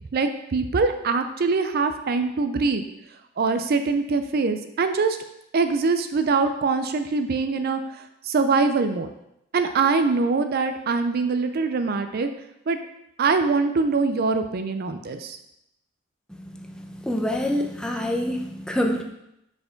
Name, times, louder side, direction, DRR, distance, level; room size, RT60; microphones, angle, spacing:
voice 1, 0.1-2.8 3.4-5.2 5.5-7.8 8.2-9.1 9.5-12.3 12.7-12.8 13.2-15.4, right 4 dB, 50° right, 8 dB, 0.4 m, -23 dB
voice 2, 16.7-19.0, left 1 dB, 5° left, 1 dB, 0.7 m, -26 dB
5.7 x 4.7 x 5.1 m, 0.83 s
head